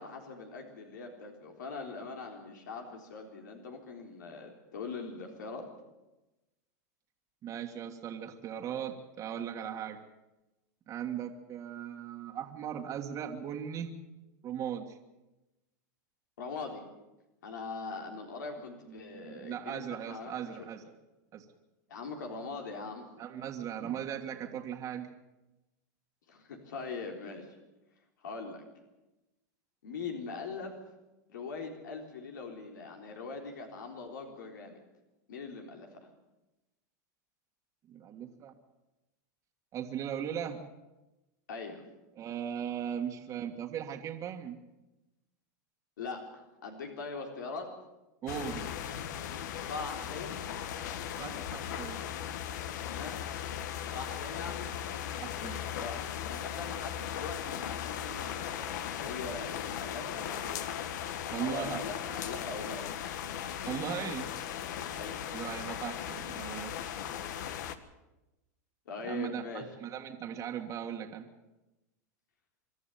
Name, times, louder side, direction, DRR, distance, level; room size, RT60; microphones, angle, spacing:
voice 1, 0.0-5.7 16.4-16.8 17.4-20.7 21.9-23.1 26.3-27.5 28.2-28.6 29.8-30.7 31.3-34.8 35.3-36.0 41.5-41.8 46.0-47.7 49.7-50.4 52.9-53.2 53.9-54.7 55.7-60.6 61.3-62.8 64.9-65.2 68.9-69.7, left 4 dB, 90° left, 3 dB, 3.7 m, -41 dB
voice 2, 7.4-10.0 10.9-13.9 14.4-15.0 19.0-21.0 21.3-21.5 23.2-25.1 37.9-38.5 39.7-40.7 42.2-44.6 48.2-48.7 51.2-52.0 55.2-55.6 61.3-61.8 63.7-64.3 65.3-66.8 69.1-71.3, right 9 dB, 35° right, 3 dB, 1.8 m, -38 dB
sound 1, 48.3-67.8, left 9 dB, 75° left, 1.4 m, -38 dB
24.5 x 12.5 x 9.2 m, 1.0 s
supercardioid pair, 130°, 10 cm